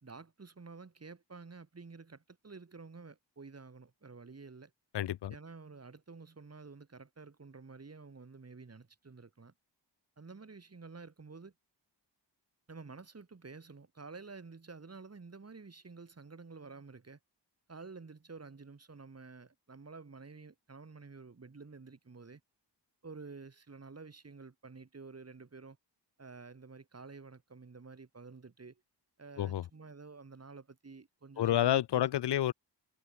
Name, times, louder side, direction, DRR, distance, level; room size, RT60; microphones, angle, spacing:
voice 1, 0.0-4.7 5.3-9.5 10.2-11.5 12.7-17.2 17.7-22.4 23.0-25.8 26.2-28.8 29.2-32.0 32.3-32.4, right 4 dB, 35° right, 4.8 m, -50 dB
voice 2, 4.9-5.3 29.4-29.6 31.4-32.5, left 12 dB, 70° left, 0.6 m, -29 dB
wide cardioid pair, 160°, 42 cm